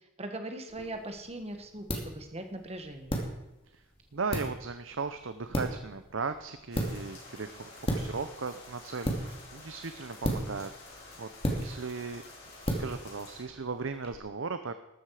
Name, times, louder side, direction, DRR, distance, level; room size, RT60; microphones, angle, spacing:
voice 1, 0.2-3.2, right 1 dB, 30° right, 6 dB, 1.8 m, -40 dB
sound 1, 0.7-14.2, equal, 30° left, 2.7 m, -36 dB
voice 2, 4.1-12.2 12.7-14.7, right 4 dB, 70° right, 9 dB, 0.8 m, -37 dB
sound 2, 6.7-13.4, left 3 dB, 55° left, 5.9 m, -50 dB
13.5 x 12.5 x 5.0 m, 0.93 s
head